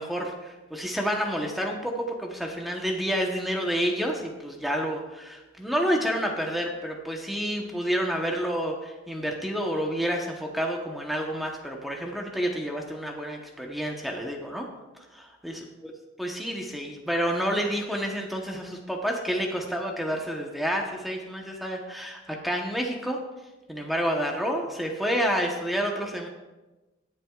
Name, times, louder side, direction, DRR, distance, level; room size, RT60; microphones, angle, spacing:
voice 1, 0.0-14.7 15.1-15.9 16.2-23.2 23.7-26.3, equal, ahead, 0 dB, 1.0 m, -29 dB
21.0 x 7.5 x 2.4 m, 1.1 s
head